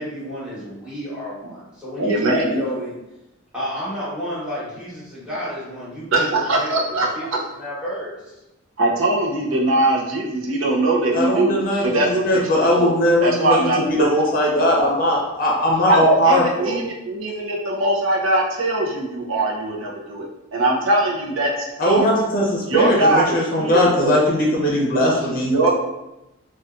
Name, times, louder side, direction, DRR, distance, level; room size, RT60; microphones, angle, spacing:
voice 1, 0.0-2.9 3.5-8.2, equal, 5° right, -11 dB, 1.1 m, -31 dB
voice 2, 2.0-2.6 6.1-7.1 8.8-11.6 11.8-14.1 15.9-22.1 22.7-24.3 25.4-25.7, right 2 dB, 70° right, -2 dB, 0.6 m, -21 dB
voice 3, 11.1-16.8 21.8-25.5, equal, 40° left, -3 dB, 0.6 m, -19 dB
2.6 x 2.3 x 2.4 m, 0.92 s
head